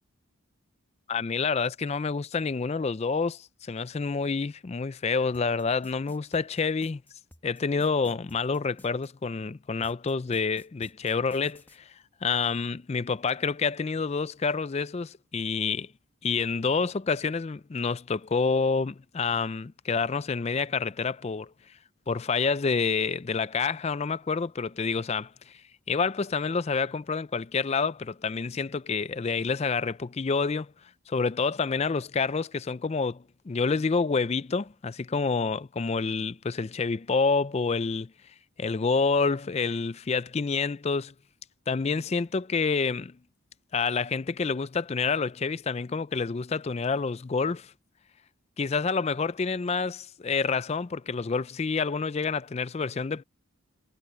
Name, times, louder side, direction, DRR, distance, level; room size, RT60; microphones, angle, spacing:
voice 1, 1.1-7.0 7.4-11.9 12.2-15.9 16.2-21.5 22.1-25.6 25.9-30.7 31.1-38.1 38.6-41.1 41.7-43.1 43.7-47.7 48.6-53.2, left 4 dB, 30° left, 0.4 m, -28 dB
sound 1, 5.3-9.1 9.8-11.8, left 1 dB, 10° left, 1.0 m, -53 dB
head